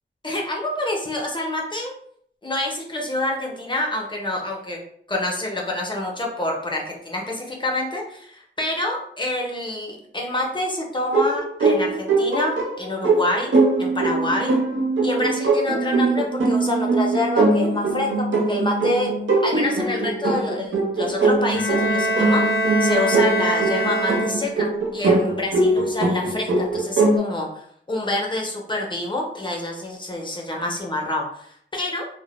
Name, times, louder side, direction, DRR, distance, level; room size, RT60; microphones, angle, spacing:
voice 1, 0.2-1.9 2.4-4.8 5.1-13.5 13.8-14.5 15.0-19.1 19.4-22.4 22.8-32.1, left 1 dB, 25° left, -1 dB, 0.6 m, -27 dB
sound 1, 11.1-27.2, right 3 dB, 75° right, 0.5 m, -21 dB
Bowed string instrument, 21.5-24.8, right 1 dB, 85° left, 0.5 m, -24 dB
2.0 x 2.0 x 2.9 m, 0.65 s
wide cardioid pair, 70°, 20 cm